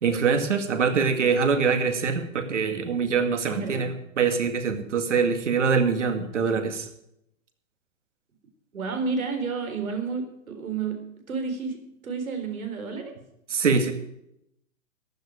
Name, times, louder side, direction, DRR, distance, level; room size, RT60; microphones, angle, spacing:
voice 1, 0.0-6.9 13.5-13.9, right 5 dB, 60° right, 7 dB, 2.2 m, -24 dB
voice 2, 3.5-3.9 8.7-11.0 11.3-11.8 12.0-13.1, right 5 dB, 85° right, 6 dB, 4.0 m, -30 dB
14.5 x 11.5 x 5.0 m, 0.79 s
hypercardioid pair, 170°, 41 cm